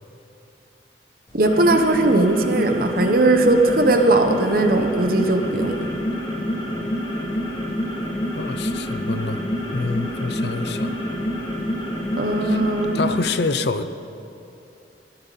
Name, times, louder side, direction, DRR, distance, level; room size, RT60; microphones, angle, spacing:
sound 1, 1.3-13.3, equal, 25° left, 2.7 m, -27 dB
voice 1, 1.3-5.9 12.2-13.1, right 2 dB, 55° right, 5 dB, 1.1 m, -19 dB
voice 2, 8.3-9.4 9.7-11.0 12.4-12.6 12.9-13.9, left 3 dB, 65° left, 11 dB, 0.7 m, -27 dB
21.0 x 14.0 x 4.2 m, 2.8 s
head